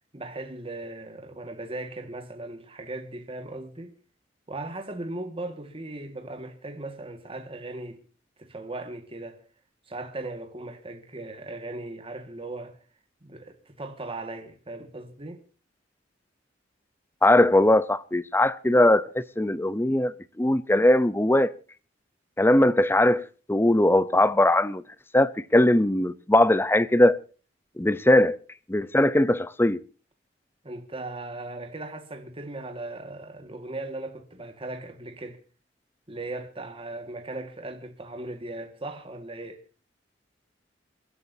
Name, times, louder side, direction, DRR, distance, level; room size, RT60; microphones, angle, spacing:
voice 1, 0.1-3.9 4.5-8.0 8.4-9.4 9.9-12.8 13.2-15.4 30.6-35.4 36.1-39.6, right 2 dB, 30° right, 1.8 m, -38 dB
voice 2, 17.2-21.5 22.4-24.8 25.1-27.2 27.8-28.4 28.7-29.8, left 1 dB, 10° left, 0.7 m, -20 dB
28.5 x 12.5 x 2.7 m
head